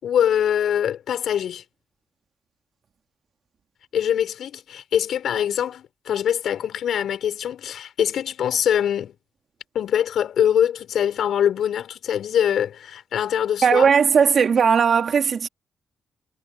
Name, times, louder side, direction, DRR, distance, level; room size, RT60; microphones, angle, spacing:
voice 1, 0.0-1.6 3.9-9.1 9.7-13.9, left 9 dB, 75° left, 5.2 m, -23 dB
voice 2, 13.6-15.5, right 6 dB, 60° right, 2.5 m, -17 dB
supercardioid pair, 50°, 0 cm